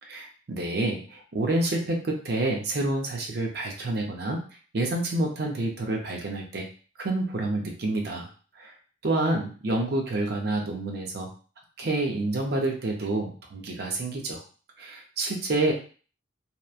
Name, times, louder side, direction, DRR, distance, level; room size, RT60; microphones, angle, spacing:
voice 1, 0.0-4.4 4.7-6.6 7.0-8.3 8.6-8.7 9.0-11.3 11.8-14.4 14.8-15.7, right 2 dB, 55° right, 1 dB, 0.6 m, -28 dB
2.9 x 2.1 x 2.4 m, 0.39 s
head